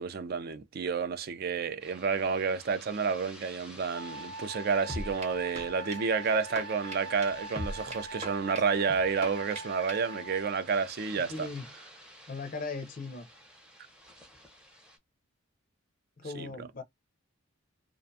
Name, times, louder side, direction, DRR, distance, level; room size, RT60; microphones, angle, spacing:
voice 1, 0.0-11.5 16.3-16.5, right 5 dB, 50° right, 0.3 m, -30 dB
sound 1, 1.8-15.0, equal, 5° right, 0.6 m, -53 dB
Wind instrument woodwind instrument, 3.9-10.7, right 1 dB, 90° right, 0.8 m, -43 dB
sound 2, 4.9-10.2, equal, 30° right, 0.9 m, -42 dB
voice 2, 11.1-11.7 12.3-13.3 16.2-16.8, left 3 dB, 40° left, 0.4 m, -38 dB
2.4 x 2.2 x 2.6 m
head